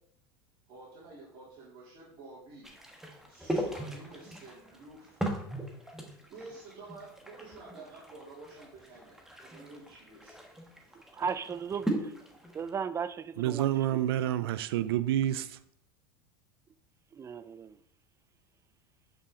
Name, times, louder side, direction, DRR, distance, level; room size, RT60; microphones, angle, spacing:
voice 1, 0.7-2.7 3.0-5.2 6.3-10.4, right 3 dB, 50° right, 3.1 m, -50 dB
sound 1, 2.6-12.7, right 1 dB, 5° right, 1.4 m, -39 dB
voice 2, 11.1-12.1 12.5-14.3 17.1-17.8, right 6 dB, 20° right, 0.5 m, -36 dB
voice 3, 13.4-15.6, right 12 dB, 80° right, 0.5 m, -28 dB
8.3 x 5.7 x 3.8 m
supercardioid pair, 110°, 13 cm